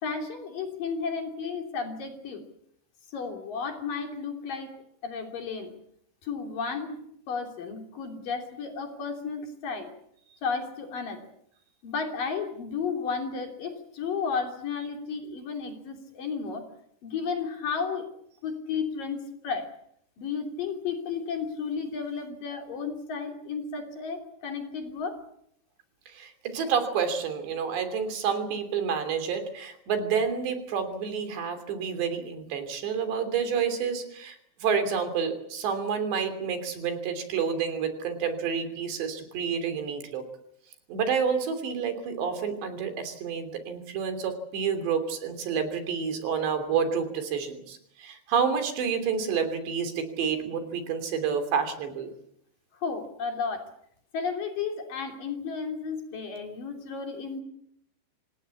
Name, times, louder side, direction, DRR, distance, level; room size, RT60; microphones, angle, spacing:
voice 1, 0.0-2.4 3.1-4.7 5.0-5.7 6.2-9.9 10.4-11.3 11.8-16.7 17.0-18.1 18.4-19.7 20.2-25.2 52.8-53.7 54.1-57.4, left 5 dB, 55° left, 4 dB, 4.5 m, -33 dB
voice 2, 26.1-40.2 40.9-52.1, right 6 dB, 80° right, 8 dB, 5.3 m, -29 dB
27.0 x 18.5 x 8.5 m, 0.75 s
omnidirectional pair, 4.9 m